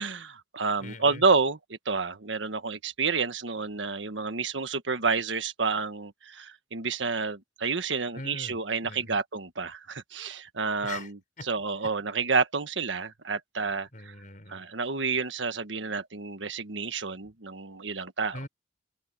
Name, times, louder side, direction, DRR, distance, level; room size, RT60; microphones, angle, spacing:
voice 1, 0.0-14.1 14.5-18.4, right 4 dB, 85° right, 1.5 m, -29 dB
voice 2, 0.8-1.2 8.1-8.6 8.8-9.2 10.8-11.1 11.4-11.5 13.9-14.6 18.3-18.5, left 2 dB, 45° left, 5.6 m, -41 dB
open air
head